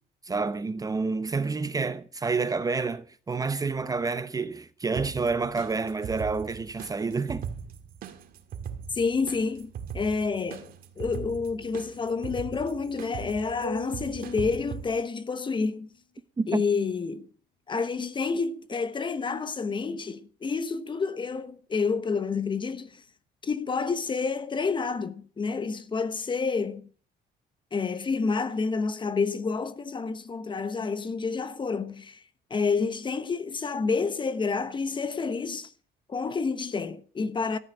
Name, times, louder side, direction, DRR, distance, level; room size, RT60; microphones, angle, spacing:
voice 1, 0.2-7.5 16.4-16.6, right 4 dB, 20° right, 0.8 m, -29 dB
sound 1, 4.9-14.8, right 7 dB, 60° right, 2.1 m, -40 dB
voice 2, 8.9-15.9 16.5-17.3 17.7-23.0 23.4-26.9 27.7-32.2 32.5-35.7 36.1-37.6, left 4 dB, 30° left, 1.1 m, -29 dB
sound 2, 13.6-15.6, left 2 dB, 55° left, 5.7 m, -40 dB
13.5 x 9.6 x 6.2 m
cardioid pair, 110°, 17 cm